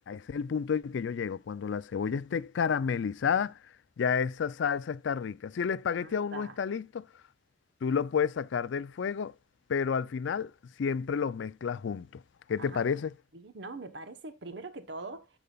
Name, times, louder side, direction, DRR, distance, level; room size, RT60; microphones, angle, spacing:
voice 1, 0.0-3.6 4.0-7.1 7.8-9.3 9.7-10.5 10.8-12.2 12.5-13.1, left 6 dB, 65° left, 0.4 m, -30 dB
voice 2, 6.0-6.6 12.6-13.0 13.3-15.3, right 3 dB, 60° right, 1.0 m, -43 dB
13.5 x 5.3 x 2.3 m
head